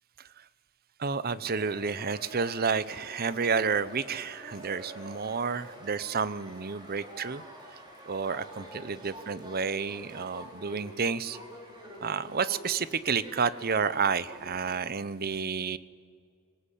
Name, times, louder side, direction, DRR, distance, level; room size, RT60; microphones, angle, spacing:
voice 1, 1.0-7.4 8.0-11.4 12.0-15.8, right 5 dB, 45° right, 16 dB, 0.8 m, -30 dB
sound 1, 1.5-14.8, equal, 20° right, 4.6 m, -47 dB
27.5 x 24.5 x 8.4 m, 2.2 s
head